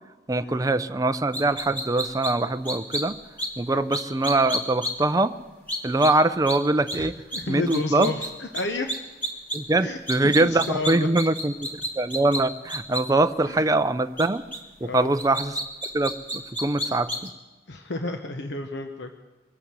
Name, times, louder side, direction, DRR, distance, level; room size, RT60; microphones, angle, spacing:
voice 1, 0.3-3.2 3.6-5.4 5.8-7.1 7.5-8.1 9.5-11.5 12.0-14.4 14.8-15.6 15.9-17.3, right 2 dB, 20° right, 10 dB, 0.5 m, -23 dB
sound 1, 1.3-2.3 2.6-3.0 3.4-3.5 3.9-4.9 5.7-6.1 6.5-6.6 6.9-7.0 7.3-7.4 7.7-8.3 8.5-8.6 8.9-9.6 10.1-12.4 12.7-13.0 14.2-14.3 14.5-14.6 15.2-17.3, equal, 10° left, 2.3 m, -29 dB
voice 2, 7.3-8.9 9.8-10.0 10.2-11.1 13.5-13.6 14.8-15.1 17.7-19.1, left 2 dB, 85° left, 5 dB, 0.9 m, -31 dB
22.5 x 8.5 x 7.5 m, 1.2 s
head